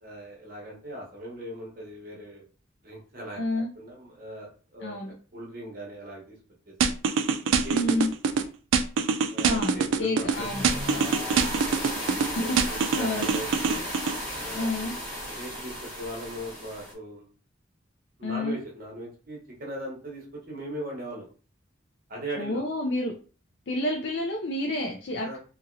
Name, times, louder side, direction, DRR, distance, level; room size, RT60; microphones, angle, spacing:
voice 1, 0.0-2.4 2.8-5.0 5.3-6.3 6.7-7.0 7.6-7.8 9.3-11.6 12.3-13.8 14.4-14.8 15.4-17.3 18.2-21.3 22.1-22.6 25.2-25.4, equal, 50° right, -2 dB, 0.9 m, -39 dB
voice 2, 3.3-3.7 4.8-5.1 7.7-8.1 9.4-10.7 12.7-13.3 14.5-14.9 18.2-18.6 22.4-23.1 23.7-25.4, left 1 dB, 65° left, 0 dB, 0.5 m, -29 dB
sound 1, 6.8-8.4 8.7-10.3 10.6-12.3 12.6-14.2, right 5 dB, 85° right, 0.3 m, -24 dB
sound 2, 10.3-16.9, equal, 10° left, 1.2 m, -34 dB
2.9 x 2.7 x 2.6 m, 0.38 s
head